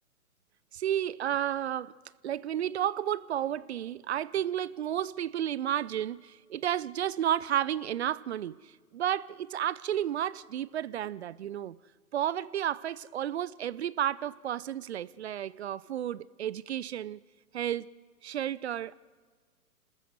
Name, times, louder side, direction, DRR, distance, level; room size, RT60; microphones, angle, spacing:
voice 1, 0.7-1.9 2.2-11.8 12.1-17.2 17.5-17.9 18.2-19.0, right 11 dB, 50° right, 0.5 m, -32 dB
27.0 x 14.0 x 7.8 m
figure-of-eight pair, 120°, 44 cm